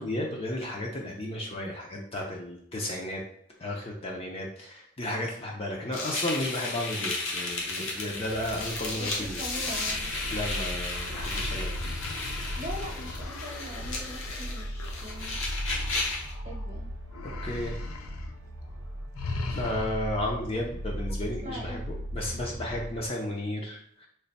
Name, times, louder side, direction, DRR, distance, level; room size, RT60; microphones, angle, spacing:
voice 1, 0.0-3.2 3.6-9.4 10.3-11.8 17.4-17.8 19.5-24.1, left 1 dB, 25° left, -1 dB, 0.5 m, -33 dB
sound 1, 5.9-16.3, left 2 dB, 70° left, 0.8 m, -34 dB
sound 2, 7.5-23.1, equal, 65° right, 0.5 m, -38 dB
voice 2, 9.0-10.1 12.6-15.4 16.3-16.9 20.5-20.8 21.1-21.2 21.4-21.8, equal, 35° right, -2 dB, 0.9 m, -41 dB
sound 3, 9.5-16.7 17.1-18.4 18.6-18.8 19.1-20.3, left 3 dB, 85° left, 0.4 m, -40 dB
3.2 x 2.2 x 4.0 m, 0.70 s
head